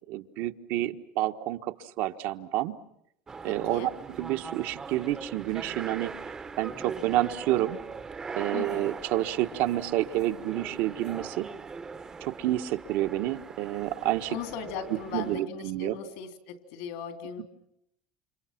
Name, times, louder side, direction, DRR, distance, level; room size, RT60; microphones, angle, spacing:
voice 1, 0.1-2.7 3.4-3.9 4.2-6.1 6.6-7.8 8.4-11.5 12.2-14.3 15.1-16.0, right 14 dB, 60° right, 7 dB, 1.3 m, -29 dB
sound 1, 3.3-15.5, right 5 dB, 15° right, 1.0 m, -41 dB
voice 2, 3.5-3.9 8.5-8.9 14.3-17.4, left 7 dB, 75° left, 7 dB, 3.5 m, -38 dB
30.0 x 27.0 x 5.9 m, 0.77 s
cardioid pair, 170°, 4 cm